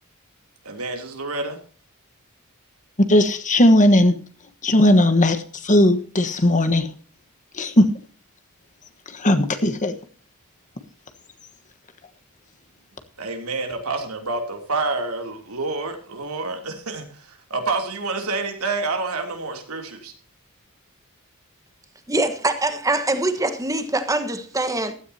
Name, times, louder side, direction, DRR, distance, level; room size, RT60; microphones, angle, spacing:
voice 1, 0.6-1.6 13.2-20.1, right 3 dB, 80° right, 3.0 m, -28 dB
voice 2, 3.1-4.2 4.6-6.9 7.6-7.9 9.1-9.9, left 1 dB, 35° left, 1.3 m, -17 dB
voice 3, 22.1-24.9, right 2 dB, 15° right, 1.4 m, -23 dB
15.5 x 13.0 x 2.9 m
head